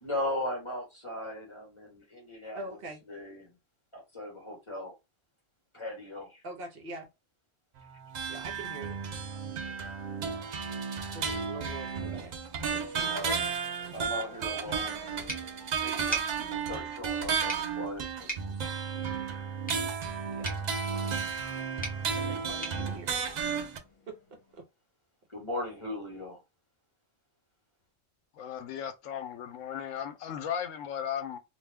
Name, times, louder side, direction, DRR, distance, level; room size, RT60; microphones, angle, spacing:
voice 1, 0.0-2.8 3.1-3.5 3.9-4.9 5.7-6.4 12.0-12.3 12.7-13.4 13.9-15.0 15.8-18.3 18.6-18.8 25.3-26.4, left 1 dB, 25° left, 1.2 m, -38 dB
voice 2, 2.5-3.0 6.4-7.1 8.3-9.0 11.1-12.3 20.3-20.5 22.1-23.2 24.1-24.6, right 2 dB, 55° right, 0.9 m, -43 dB
sound 1, 7.8-23.8, right 6 dB, 75° right, 0.4 m, -33 dB
sound 2, 9.2-20.8 21.2-24.6, left 1 dB, 55° left, 1.1 m, -56 dB
sound 3, 15.3-24.0, right 2 dB, 10° left, 0.8 m, -43 dB
voice 3, 28.4-31.4, left 9 dB, 85° left, 1.0 m, -36 dB
2.6 x 2.1 x 3.4 m
omnidirectional pair, 1.3 m